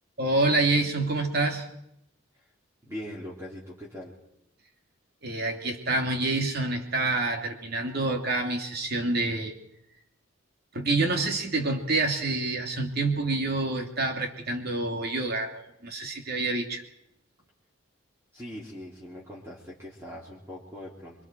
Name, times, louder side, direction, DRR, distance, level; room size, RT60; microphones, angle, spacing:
voice 1, 0.2-1.7 5.2-9.5 10.7-16.8, right 2 dB, 50° right, 3 dB, 2.8 m, -27 dB
voice 2, 2.8-4.2 18.3-21.2, left 1 dB, 10° right, -6 dB, 3.5 m, -41 dB
27.0 x 24.0 x 4.6 m, 0.79 s
head